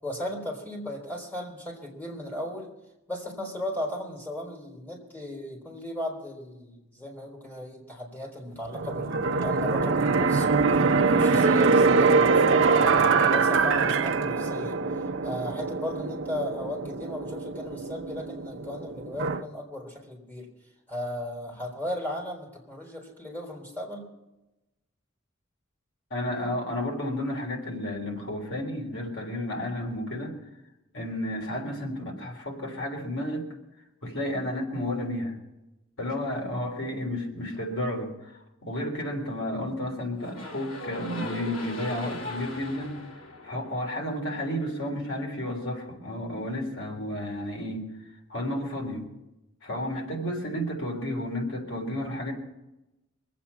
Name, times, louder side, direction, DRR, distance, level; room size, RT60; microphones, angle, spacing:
voice 1, 0.0-2.7 3.1-14.8 15.2-20.5 20.9-24.0, left 1 dB, 10° left, -1 dB, 3.7 m, -36 dB
sound 1, 8.7-19.4, right 4 dB, 65° right, 0.7 m, -23 dB
voice 2, 26.1-30.4 30.9-33.5 34.0-35.4 36.0-43.0 43.4-47.9 48.3-49.1 49.6-52.3, left 1 dB, 75° left, 1 dB, 3.6 m, -32 dB
sound 2, 40.1-44.3, left 1 dB, 90° left, 2.9 m, -39 dB
24.0 x 8.6 x 5.7 m, 0.96 s
head